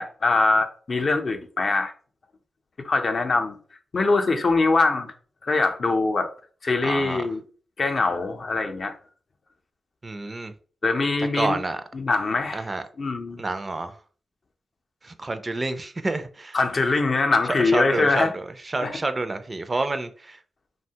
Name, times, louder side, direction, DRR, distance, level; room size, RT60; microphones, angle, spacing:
voice 1, 0.0-1.9 2.8-3.6 3.9-5.1 5.4-6.3 6.6-7.4 7.8-8.9 10.8-11.6 11.9-12.6 13.0-13.4 16.5-18.3 18.8-19.0, left 3 dB, 50° left, 0.4 m, -23 dB
voice 2, 6.8-7.3 10.0-10.5 11.4-11.8 12.5-12.8 13.4-14.0 15.0-16.6 17.5-20.4, right 2 dB, 30° right, 0.3 m, -29 dB
2.7 x 2.2 x 2.7 m
cardioid pair, 75°, 0 cm